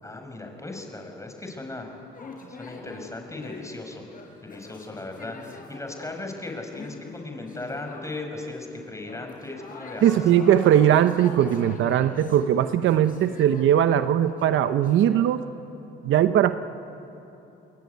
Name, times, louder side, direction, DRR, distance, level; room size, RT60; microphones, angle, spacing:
voice 1, 0.0-2.0 2.5-4.1 4.4-10.3, left 2 dB, 15° left, 4 dB, 5.6 m, -37 dB
sound 1, 2.1-3.0 3.4-8.5 8.8-15.3, left 3 dB, 45° left, 5.5 m, -43 dB
voice 2, 10.0-15.4 16.0-16.6, right 10 dB, 80° right, 11 dB, 0.9 m, -20 dB
29.0 x 21.5 x 9.6 m, 3.0 s
cardioid pair, 90°, 20 cm